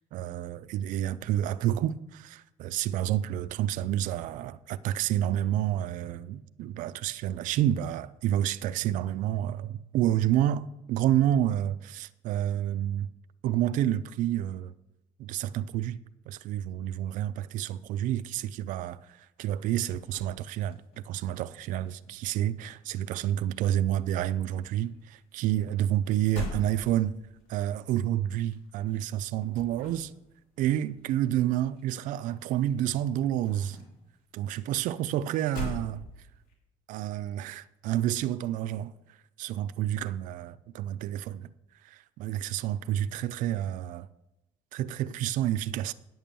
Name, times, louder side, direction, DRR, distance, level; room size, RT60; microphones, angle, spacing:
voice 1, 0.0-13.1 13.4-14.7 15.2-16.0 16.3-20.8 21.1-27.1 27.5-30.1 30.6-33.8 34.3-36.1 36.9-38.9 39.4-41.5 41.8-44.1 44.7-45.9, right 12 dB, 60° right, 0.4 m, -29 dB
sound 1, 19.4-21.4 21.7-23.6 23.9-32.6 32.8-36.5, left 1 dB, 75° left, 3.1 m, -43 dB
9.4 x 6.9 x 7.4 m
cardioid pair, 180°, 15 cm